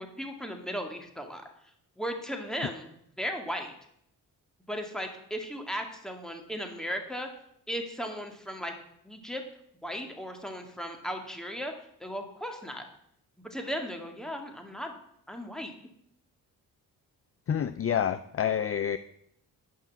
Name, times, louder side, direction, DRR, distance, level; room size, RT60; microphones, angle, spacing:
voice 1, 0.0-1.5 2.0-2.9 3.2-3.7 4.7-7.3 7.7-8.7 9.0-9.4 9.8-11.7 12.0-12.8 13.4-14.9 15.3-15.7, equal, ahead, 4 dB, 2.1 m, -36 dB
voice 2, 17.5-19.0, left 9 dB, 40° left, 13 dB, 0.5 m, -28 dB
9.3 x 5.6 x 7.3 m, 0.72 s
cardioid pair, 65°, 38 cm